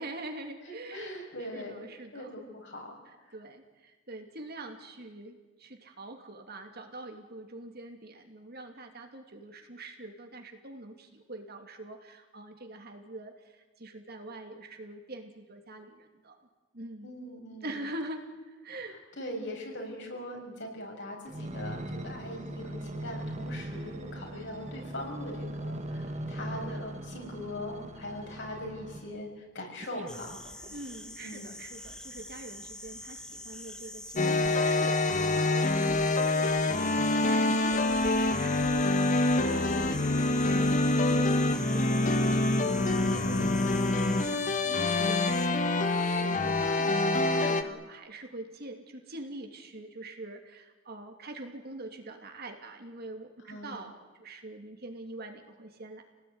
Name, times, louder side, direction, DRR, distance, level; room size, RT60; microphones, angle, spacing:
voice 1, 0.0-2.4 3.1-16.5 16.7-17.3 17.6-19.0 30.7-42.6 42.8-43.3 43.8-46.1 46.4-56.0, right 2 dB, 50° right, 4 dB, 2.9 m, -44 dB
voice 2, 0.6-1.8 2.1-2.9 17.0-17.8 19.2-29.3 29.5-30.4 31.2-31.5 46.0-46.4 53.5-53.8, left 1 dB, 60° left, 1 dB, 6.7 m, -41 dB
sound 1, 21.3-29.2 29.8-31.1 31.7-31.8, right 1 dB, 35° right, 1.8 m, -40 dB
sound 2, 30.1-45.5, left 1 dB, 5° left, 1.4 m, -44 dB
sound 3, 34.2-47.6, left 2 dB, 40° left, 1.4 m, -26 dB
28.0 x 18.5 x 9.7 m, 1.2 s
head